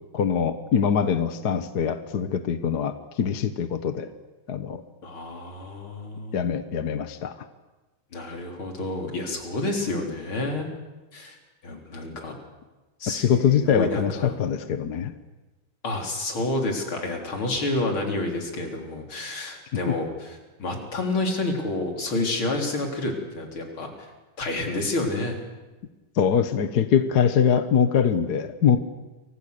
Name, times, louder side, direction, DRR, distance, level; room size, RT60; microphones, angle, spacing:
voice 1, 0.1-4.1 4.5-4.8 6.3-7.3 13.1-15.1 19.9-20.0 26.1-28.8, left 7 dB, 55° left, 10 dB, 1.5 m, -23 dB
voice 2, 5.0-6.4 8.1-10.7 11.1-11.4 11.6-12.3 13.0-14.3 15.8-24.1 24.4-25.4, left 2 dB, 75° left, 2 dB, 4.6 m, -29 dB
29.0 x 24.5 x 6.7 m, 1.2 s
omnidirectional pair, 2.3 m